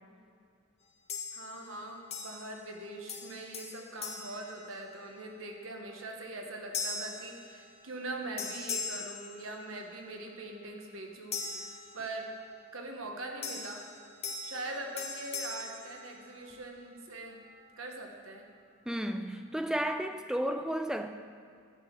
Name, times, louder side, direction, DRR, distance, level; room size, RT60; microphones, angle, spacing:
sound 1, 1.1-1.8 2.1-2.8 3.1-5.3 5.8-6.0 6.7-8.1 8.4-10.0 11.3-12.5 13.4-16.7, left 4 dB, 30° left, 0.8 m, -41 dB
voice 1, 1.3-12.3 12.7-13.8 14.4-17.4 17.8-18.5, right 2 dB, 75° right, 2 dB, 1.2 m, -42 dB
voice 2, 18.9-21.1, right 1 dB, 5° right, 7 dB, 0.3 m, -33 dB
10.5 x 4.4 x 7.4 m, 2.2 s
head